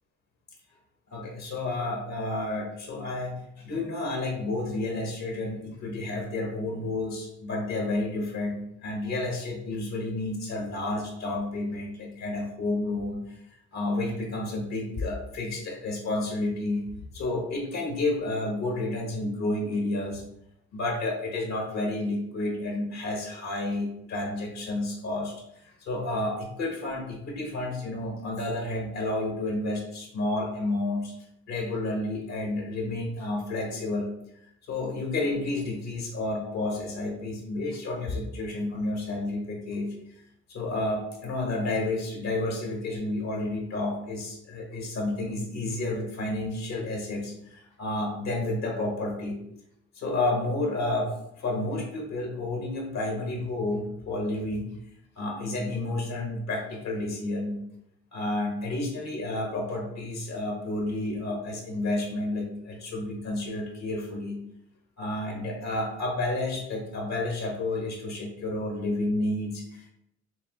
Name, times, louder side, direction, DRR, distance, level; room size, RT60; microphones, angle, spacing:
voice 1, 1.1-13.4 13.7-16.9 17.1-20.2 20.7-25.3 25.6-31.1 31.5-34.1 34.7-40.2 40.5-49.4 49.9-54.7 55.2-57.6 58.1-64.4 65.0-69.9, left 2 dB, 60° left, 1 dB, 1.3 m, -30 dB
5.9 x 2.2 x 3.0 m, 0.77 s
cardioid pair, 90°, 30 cm